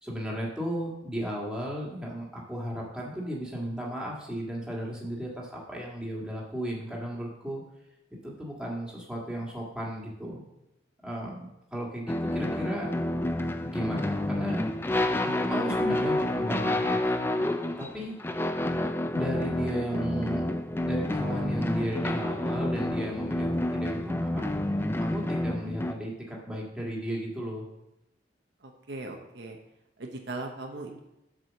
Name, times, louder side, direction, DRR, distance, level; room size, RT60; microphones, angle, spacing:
voice 1, 0.0-7.6 8.2-10.4 11.0-12.9 13.6-14.6 15.2-17.0 17.4-18.1 19.1-20.4 20.8-24.4 25.0-27.7, equal, 5° right, -4 dB, 1.7 m, -35 dB
sound 1, 12.1-25.9, left 1 dB, 10° left, 0.3 m, -29 dB
voice 2, 28.6-29.6 30.0-31.0, right 2 dB, 65° right, 2 dB, 0.9 m, -38 dB
7.6 x 4.9 x 6.3 m, 0.87 s
head